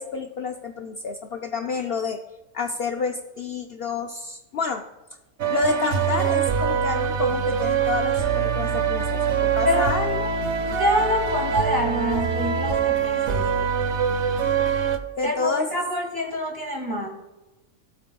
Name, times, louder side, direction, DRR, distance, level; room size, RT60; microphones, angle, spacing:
voice 1, 0.0-2.2 2.5-4.8 5.5-10.4 15.2-15.7, left 4 dB, 60° left, 5 dB, 0.7 m, -29 dB
sound 1, 5.4-15.0, right 7 dB, 65° right, 1.1 m, -24 dB
voice 2, 10.7-13.7 15.2-17.1, left 1 dB, 15° right, 0 dB, 2.0 m, -26 dB
17.5 x 8.0 x 2.3 m, 1.1 s
omnidirectional pair, 1.3 m